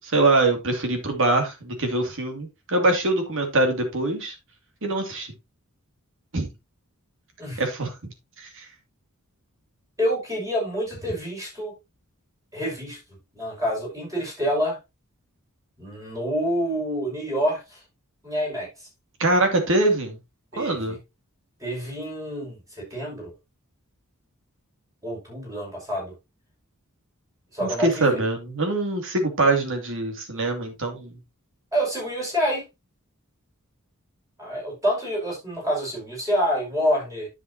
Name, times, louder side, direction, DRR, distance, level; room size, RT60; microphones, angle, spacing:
voice 1, 0.0-4.3 4.8-5.3 6.3-6.5 7.6-8.7 19.2-20.2 20.6-21.0 27.6-31.2, right 2 dB, 60° right, 2.6 m, -23 dB
voice 2, 10.0-11.7 12.5-13.0 13.3-14.8 15.8-17.8 18.2-18.9 20.5-21.0 21.6-23.3 25.0-26.1 27.5-28.2 31.7-32.6 34.4-37.3, equal, 15° right, 6.3 m, -27 dB
10.5 x 7.5 x 2.9 m
head